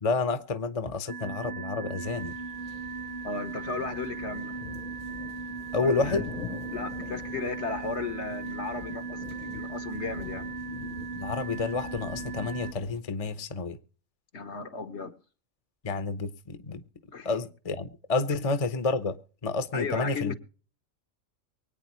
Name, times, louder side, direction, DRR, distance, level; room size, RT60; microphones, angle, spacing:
voice 1, 0.0-2.3 5.7-6.2 11.1-13.8 15.8-16.8 17.2-19.2 19.4-20.3, left 3 dB, 30° left, 0.9 m, -29 dB
sound 1, 1.1-12.7, right 4 dB, 30° right, 1.0 m, -38 dB
sound 2, 2.0-13.0, left 5 dB, 85° left, 1.8 m, -43 dB
voice 2, 3.2-4.6 5.7-6.2 6.7-10.5 14.3-15.1 17.1-17.3 19.7-20.3, left 4 dB, 60° left, 1.3 m, -35 dB
24.0 x 9.0 x 3.0 m
omnidirectional pair, 1.3 m